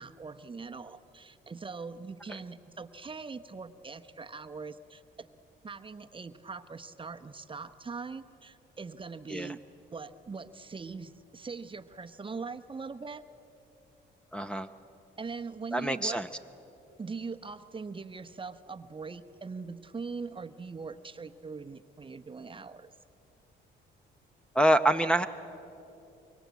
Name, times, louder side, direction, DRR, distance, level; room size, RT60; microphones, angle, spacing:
voice 1, 0.0-5.3 5.6-9.6 9.9-13.2 15.2-16.2 17.0-22.9, right 4 dB, 25° right, 8 dB, 0.9 m, -41 dB
voice 2, 14.3-14.7 15.7-16.3 24.5-25.3, right 1 dB, 5° left, 5 dB, 0.8 m, -25 dB
25.0 x 23.5 x 8.3 m, 2.9 s
cardioid pair, 90°, 20 cm